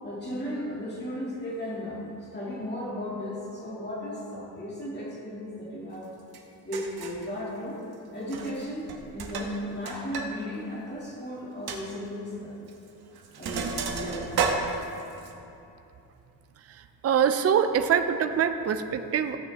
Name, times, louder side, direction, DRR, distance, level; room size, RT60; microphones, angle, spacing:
voice 1, 0.0-6.1 6.6-7.8 8.1-12.6 13.4-14.3, equal, 25° left, -6 dB, 2.2 m, -35 dB
Sink (filling or washing), 6.3-6.4 6.7-7.3 8.2-8.6 8.9-10.3 10.6-10.7 11.1-11.2 11.7-11.8 12.7-12.9 13.2-15.3, right 5 dB, 75° right, 1.2 m, -32 dB
voice 2, 17.0-19.4, right 8 dB, 40° right, 9 dB, 0.5 m, -24 dB
15.5 x 8.8 x 3.5 m, 2.8 s
wide cardioid pair, 135°, 38 cm